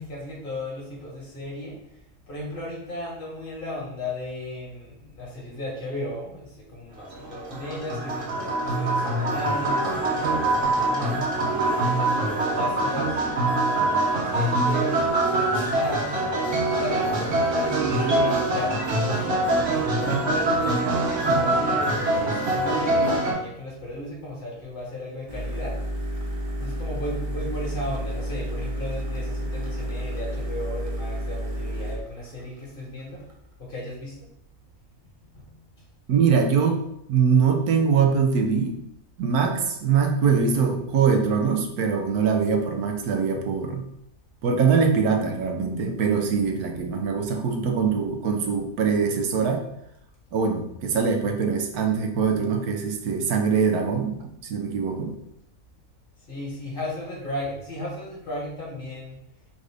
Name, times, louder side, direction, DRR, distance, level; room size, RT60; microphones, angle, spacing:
voice 1, 0.0-1.8 2.3-11.3 11.8-16.2 16.7-19.3 19.9-25.8 26.6-33.2 33.6-34.3 35.3-35.9 56.3-59.2, left 1 dB, 35° left, -4 dB, 1.6 m, -35 dB
sound 1, 7.1-23.3, right 2 dB, 55° right, 1.3 m, -24 dB
sound 2, 25.3-33.5, equal, 30° right, 0.8 m, -31 dB
voice 2, 36.1-36.8 37.1-38.8 39.2-43.9 44.4-49.7 50.3-55.2, right 6 dB, 80° right, 4 dB, 1.2 m, -23 dB
3.9 x 2.6 x 4.8 m, 0.76 s
omnidirectional pair, 1.6 m